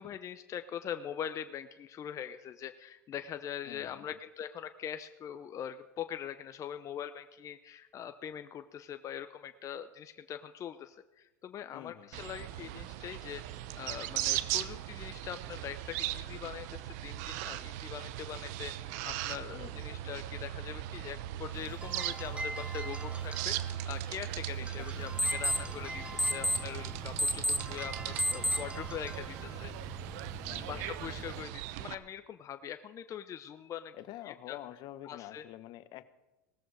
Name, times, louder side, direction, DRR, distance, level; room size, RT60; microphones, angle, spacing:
voice 1, 0.0-29.7 30.6-33.9 34.2-34.6 35.0-35.4, left 9 dB, 35° left, 9 dB, 0.7 m, -42 dB
voice 2, 3.7-4.1 11.7-12.1 19.5-20.0 24.6-24.9 30.4-30.9 33.9-36.0, left 14 dB, 55° left, 13 dB, 1.1 m, -48 dB
sound 1, 12.1-31.9, right 13 dB, 65° right, 0.8 m, -38 dB
sound 2, 21.5-31.9, right 1 dB, 15° right, 1.3 m, -46 dB
sound 3, 24.9-31.4, equal, 5° left, 0.8 m, -35 dB
18.5 x 14.0 x 4.8 m, 1.0 s
hypercardioid pair, 95°, 9 cm